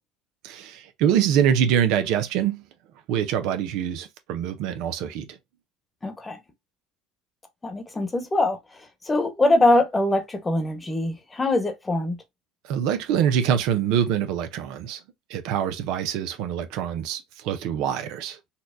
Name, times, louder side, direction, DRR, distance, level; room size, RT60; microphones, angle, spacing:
voice 1, 0.4-2.6 3.1-5.2 12.7-15.0 15.3-18.4, right 9 dB, 70° right, 0.6 m, -24 dB
voice 2, 6.0-6.4 7.6-8.6 9.0-12.2, left 2 dB, 20° left, 1.1 m, -22 dB
4.2 x 2.3 x 2.6 m
hypercardioid pair, 80°, 0 cm